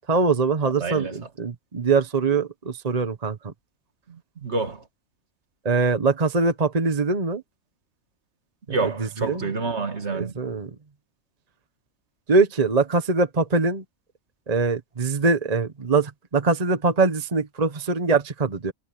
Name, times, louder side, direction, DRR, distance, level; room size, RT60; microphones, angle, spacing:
voice 1, 0.1-3.5 5.6-7.4 9.0-9.4 10.1-10.7 12.3-13.8 14.5-18.7, right 4 dB, 30° right, 1.2 m, -23 dB
voice 2, 0.6-1.2 4.1-4.8 8.7-10.3, right 3 dB, 55° right, 2.1 m, -28 dB
omnidirectional pair, 1.4 m